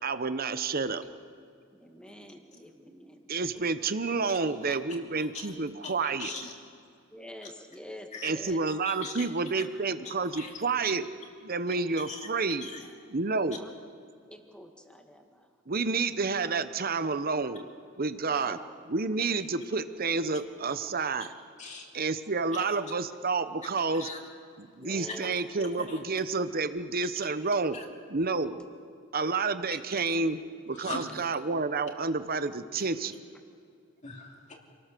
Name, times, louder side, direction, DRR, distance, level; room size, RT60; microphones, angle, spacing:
voice 1, 0.0-1.0 3.3-6.3 8.2-11.0 11.4-12.7 13.1-13.6 15.7-17.7 18.0-18.6 18.9-21.3 21.9-24.1 24.6-27.7 28.1-28.6 29.1-30.4 30.7-33.1, right 4 dB, 50° right, 12 dB, 1.0 m, -29 dB
voice 2, 1.7-3.9 7.1-8.7 11.7-11.9 13.5-13.7 14.3-15.5 18.2-18.6 24.7-25.4 29.6-29.7, left 1 dB, 5° left, 3 dB, 2.0 m, -47 dB
voice 3, 5.2-5.5 5.8-6.5 8.1-8.3 8.8-9.3 10.0-10.6 12.0-12.3 12.6-12.9 21.6-21.9 22.5-22.7 24.0-24.2 24.8-25.4 25.8-26.0 27.7-27.9 30.0-30.1 30.7-31.3 34.0-34.5, left 3 dB, 40° left, 1 dB, 2.7 m, -41 dB
27.5 x 18.5 x 6.8 m, 2.4 s
head